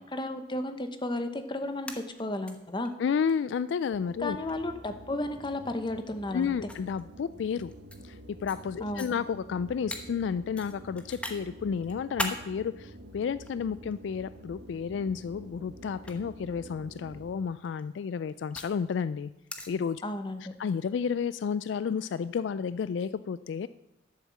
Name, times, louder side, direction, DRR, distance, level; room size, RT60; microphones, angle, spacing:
voice 1, 0.1-2.9 4.2-6.5 8.8-9.1 20.0-20.5, left 1 dB, 25° left, 8 dB, 1.0 m, -33 dB
sound 1, 1.7-2.5 2.8-2.9 3.3-3.4 4.5-4.7 5.8-5.9 6.7-8.0 8.5-8.6 9.0-9.1 9.9-10.0 10.6-11.4 11.8-12.4 13.3-14.0 15.0-15.3 15.9-16.1 17.5-18.8 19.5-19.7, left 1 dB, 5° left, 1.0 m, -37 dB
voice 2, 3.0-4.4 6.3-7.7 8.0-19.3 19.7-20.0 20.6-23.7, left 6 dB, 70° left, 16 dB, 0.3 m, -31 dB
sound 2, 3.9-17.6, right 1 dB, 70° right, 1.1 m, -49 dB
11.5 x 7.2 x 7.3 m, 0.89 s
head